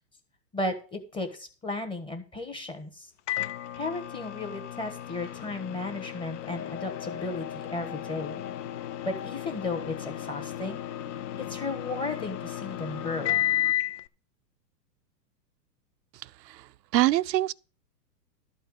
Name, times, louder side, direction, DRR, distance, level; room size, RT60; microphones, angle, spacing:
voice 1, 0.5-3.1 3.7-8.4 9.0-10.8 11.4-13.4, left 2 dB, 10° left, 1.2 m, -34 dB
Microwave oven, 3.3-14.0, left 13 dB, 45° left, 0.6 m, -34 dB
sound 1, 6.5-13.7, left 7 dB, 90° left, 1.9 m, -43 dB
voice 2, 16.2-17.5, right 16 dB, 80° right, 0.6 m, -26 dB
12.5 x 4.4 x 7.9 m
hypercardioid pair, 145°, 49 cm